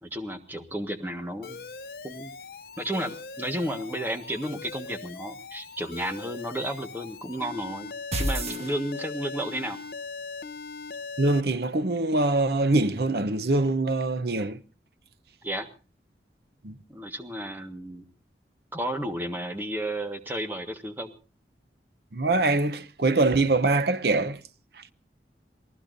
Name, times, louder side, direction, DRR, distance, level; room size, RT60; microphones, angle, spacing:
voice 1, 0.0-1.6 2.0-2.3 2.8-7.9 8.2-9.8 15.4-15.7 16.9-18.0 18.7-21.1, right 1 dB, 10° right, 1.4 m, -32 dB
Alarm, 1.4-11.4, left 4 dB, 55° left, 0.7 m, -40 dB
sound 1, 8.1-9.4, right 1 dB, 35° right, 1.6 m, -30 dB
voice 2, 11.2-14.6 16.6-16.7 22.1-24.4 24.7-24.8, right 2 dB, 65° right, 0.8 m, -24 dB
27.5 x 19.0 x 2.6 m
head